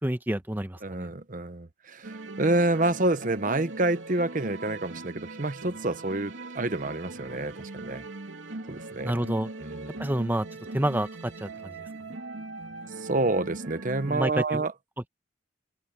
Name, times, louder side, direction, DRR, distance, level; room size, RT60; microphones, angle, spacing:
voice 1, 0.0-1.1 9.0-9.5 10.0-10.5 10.7-11.8 14.1-14.6, right 1 dB, 10° right, 1.0 m, -28 dB
voice 2, 0.8-8.0 8.7-9.1 9.6-10.0 13.0-14.7, right 2 dB, 45° right, 1.0 m, -28 dB
sound 1, 2.0-14.3, right 2 dB, 80° right, 2.7 m, -40 dB
open air
head